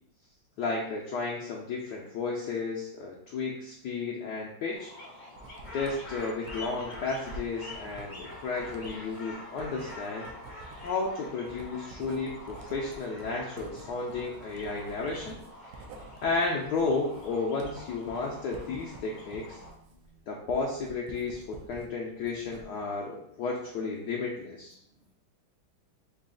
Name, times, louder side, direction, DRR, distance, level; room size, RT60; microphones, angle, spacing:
voice 1, 0.6-4.9 5.7-10.3 10.8-15.4 16.2-19.6 20.3-24.8, left 4 dB, 80° left, -2 dB, 0.9 m, -33 dB
sound 1, 4.7-19.7, left 1 dB, 55° left, 0.4 m, -46 dB
Writing, 5.4-21.9 22.2-22.9, right 2 dB, 75° right, 1.0 m, -48 dB
voice 2, 19.6-20.3 24.9-25.1, right 7 dB, 50° right, -7 dB, 0.8 m, -62 dB
3.9 x 2.3 x 3.7 m, 0.75 s
omnidirectional pair, 2.3 m